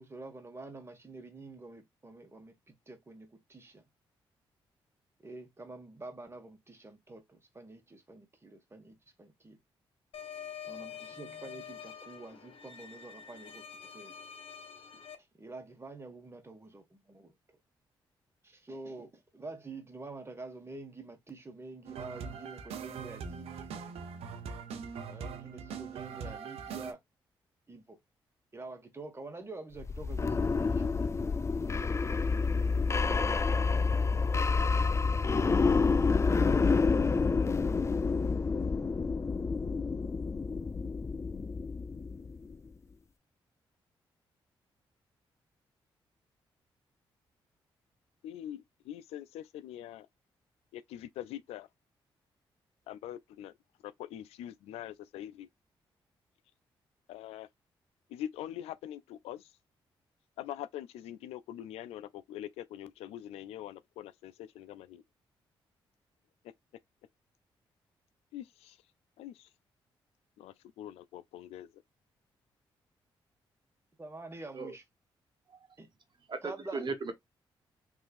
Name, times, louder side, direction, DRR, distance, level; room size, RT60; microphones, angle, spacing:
voice 1, 0.0-3.8 5.2-9.6 10.7-13.6 13.9-14.1 15.4-17.3 18.4-23.7 25.0-27.0 27.7-28.0 28.5-30.9 32.6-33.7 74.0-74.8 75.8-75.9 76.4-76.8, right 3 dB, 25° right, 1.6 m, -47 dB
sound 1, 10.1-15.2, left 8 dB, 65° left, 1.0 m, -46 dB
sound 2, 21.8-26.9, right 6 dB, 80° right, 0.8 m, -42 dB
sound 3, 29.8-42.6, left 4 dB, 30° left, 0.4 m, -28 dB
voice 2, 48.2-50.1 50.7-51.7 52.9-53.5 53.8-55.5 57.1-57.5 58.1-59.5 60.4-65.0 68.3-68.8 69.2-69.5 70.4-71.7, left 11 dB, 85° left, 0.4 m, -43 dB
voice 3, 76.3-77.1, right 4 dB, 50° right, 1.3 m, -36 dB
3.7 x 3.2 x 2.5 m
supercardioid pair, 55°, 10 cm